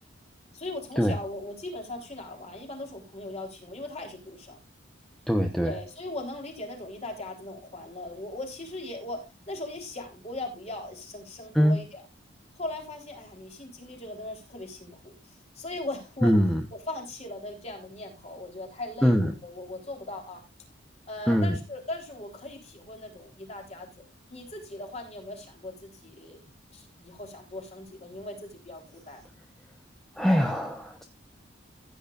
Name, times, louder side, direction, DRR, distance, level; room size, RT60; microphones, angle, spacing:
voice 1, 0.5-4.6 5.6-12.0 12.6-15.1 15.5-16.3 16.7-20.4 21.1-23.9 24.3-26.4 26.7-29.2, left 2 dB, 35° left, 1 dB, 3.9 m, -39 dB
voice 2, 5.3-5.7 11.5-11.8 16.2-16.6 19.0-19.3 21.3-21.5 30.2-31.0, equal, ahead, 3 dB, 0.9 m, -22 dB
15.5 x 9.5 x 2.5 m, 0.24 s
head